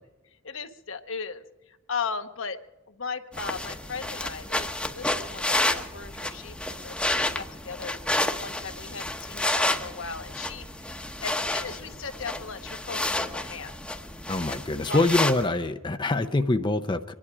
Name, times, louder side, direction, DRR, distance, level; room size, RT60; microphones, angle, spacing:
voice 1, 0.4-2.6 2.9-8.0 8.4-10.9 11.2-13.7 14.9-15.0, left 5 dB, 70° left, 8 dB, 1.0 m, -37 dB
sound 1, 3.3-15.5, left 1 dB, 5° left, 1.0 m, -30 dB
voice 2, 14.3-17.1, left 2 dB, 20° left, 7 dB, 0.6 m, -25 dB
25.0 x 11.0 x 4.9 m, 1.1 s
head